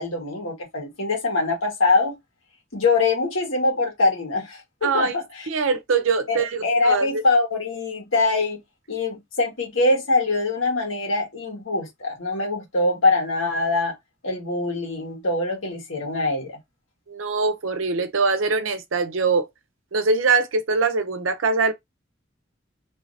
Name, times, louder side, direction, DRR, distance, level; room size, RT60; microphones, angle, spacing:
voice 1, 0.0-2.2 2.7-5.5 6.3-8.6 8.9-13.9 14.2-16.6, left 3 dB, 85° left, 1.8 m, -23 dB
voice 2, 4.8-5.2 5.5-7.2 17.1-19.5 19.9-21.7, right 4 dB, 80° right, 0.7 m, -23 dB
3.2 x 2.7 x 3.2 m
head